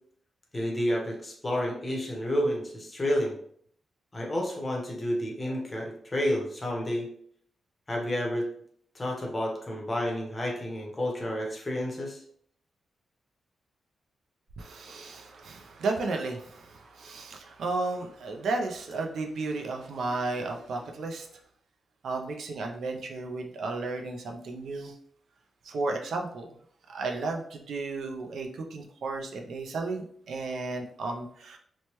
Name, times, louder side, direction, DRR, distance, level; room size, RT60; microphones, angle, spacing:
voice 1, 0.5-3.4 4.1-7.1 7.9-8.5 8.9-12.2, equal, 20° left, -1 dB, 0.7 m, -30 dB
voice 2, 14.6-21.3 22.0-24.9 25.6-26.5 26.9-31.6, right 3 dB, 70° right, 2 dB, 0.4 m, -33 dB
3.0 x 2.1 x 2.9 m, 0.62 s
wide cardioid pair, 155°, 0 cm